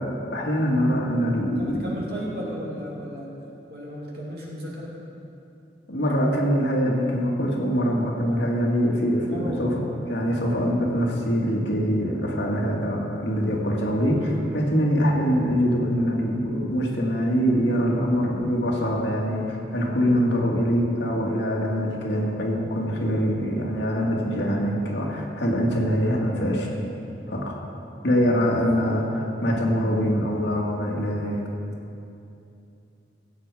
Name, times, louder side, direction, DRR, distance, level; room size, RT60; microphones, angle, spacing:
voice 1, 0.0-1.8 5.9-9.7 10.1-26.7 27.3-27.6 28.0-31.4, equal, 80° left, -2 dB, 2.0 m, -24 dB
voice 2, 1.5-3.3 3.7-4.9 8.3-8.5 9.2-10.0 28.5-29.6, equal, 55° right, -4 dB, 2.6 m, -35 dB
16.0 x 7.9 x 4.9 m, 2.7 s
head